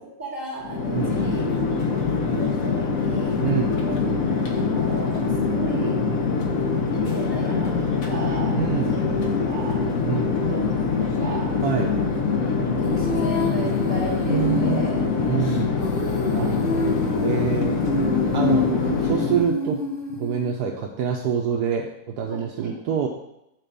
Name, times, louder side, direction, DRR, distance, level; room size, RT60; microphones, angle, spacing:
voice 1, 0.2-3.4 3.7-6.1 6.9-9.1 9.5-9.8 10.4-11.5 11.9-12.1 12.5-16.5 22.3-22.7, right 1 dB, 25° right, -5 dB, 3.3 m, -34 dB
Chatter / Fixed-wing aircraft airplane, 0.6-19.5, left 5 dB, 60° left, 1.5 m, -24 dB
voice 2, 3.4-3.8 8.5-8.9 10.1-10.4 11.6-11.9 14.2-16.0 16.3-17.8 18.3-18.7 19.0-19.8 20.1-21.9 22.2-23.1, right 7 dB, 75° right, 0 dB, 1.3 m, -26 dB
Female singing, 12.8-20.5, left 2 dB, 35° left, 1.5 m, -28 dB
7.6 x 4.3 x 6.8 m, 0.83 s
omnidirectional pair, 1.7 m